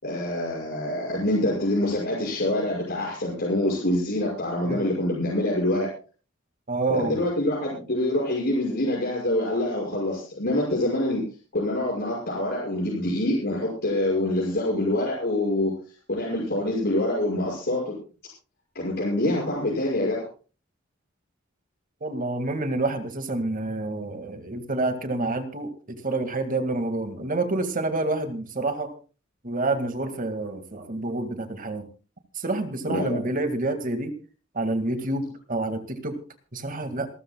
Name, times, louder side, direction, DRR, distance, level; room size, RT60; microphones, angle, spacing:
voice 1, 0.0-5.9 6.9-11.2 11.5-15.7 16.1-17.9 18.7-20.2 32.9-33.2, left 1 dB, 55° left, -4 dB, 6.3 m, -25 dB
voice 2, 6.7-7.2 22.0-25.7 26.0-28.9 29.4-31.9 32.3-34.1 34.5-36.2 36.5-37.1, right 2 dB, 45° right, 8 dB, 2.0 m, -28 dB
27.0 x 13.5 x 2.3 m, 0.36 s
head